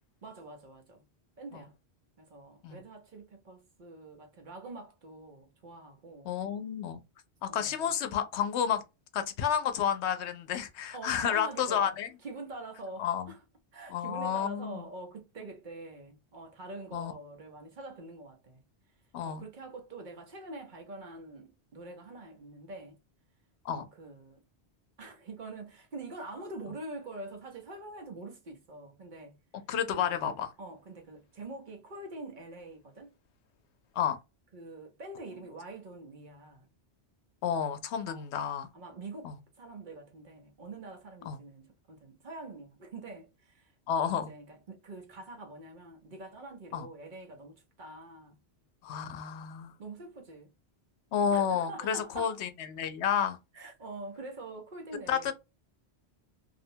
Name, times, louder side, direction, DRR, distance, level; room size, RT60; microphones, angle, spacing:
voice 1, 0.2-1.0 1.4-1.7 2.2-6.3 7.5-7.9 10.9-11.9 12.2-13.4 13.7-18.6 19.2-23.0 23.7-24.4 25.0-29.4 29.9-33.1 34.5-36.7 38.1-38.3 38.7-48.4 49.8-50.5 51.3-52.4 53.5-55.3, right 2 dB, 50° right, 0.8 m, -45 dB
voice 2, 6.2-7.0 7.4-8.8 9.1-12.1 13.0-13.3 13.9-14.8 16.9-17.1 19.1-19.4 23.6-23.9 29.7-30.5 34.0-34.2 35.3-35.4 37.4-38.7 39.2-39.3 41.3-41.4 43.9-44.3 46.7-46.9 48.8-49.7 51.1-53.4 55.1-55.3, left 8 dB, 85° left, 0.9 m, -31 dB
2.6 x 2.1 x 2.7 m
omnidirectional pair, 1.1 m